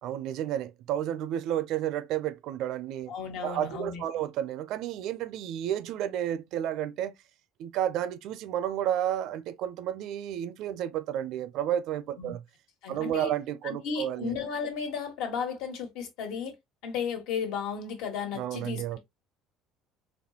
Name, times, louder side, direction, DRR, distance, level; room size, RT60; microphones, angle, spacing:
voice 1, 0.0-3.1 3.4-7.1 7.6-12.4 12.9-14.3 18.3-19.0, right 11 dB, 65° right, 0.4 m, -31 dB
voice 2, 3.1-4.0 12.2-12.3 12.8-13.3 13.8-16.5 16.8-19.0, left 6 dB, 75° left, 1.5 m, -34 dB
4.2 x 3.0 x 2.8 m
cardioid pair, 145°, 0 cm